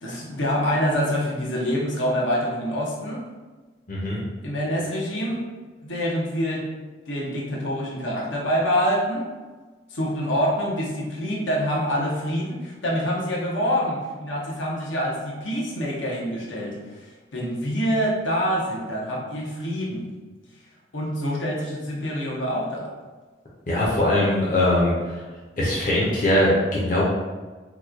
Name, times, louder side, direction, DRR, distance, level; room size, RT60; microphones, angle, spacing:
voice 1, 0.0-3.2 4.4-5.4 5.8-6.7 7.1-9.3 9.9-20.1 20.9-22.9, equal, 80° left, -4 dB, 0.8 m, -26 dB
voice 2, 3.9-4.2 23.7-25.2 25.6-27.0, left 1 dB, 45° left, -6 dB, 0.7 m, -21 dB
3.0 x 2.2 x 3.6 m, 1.3 s
head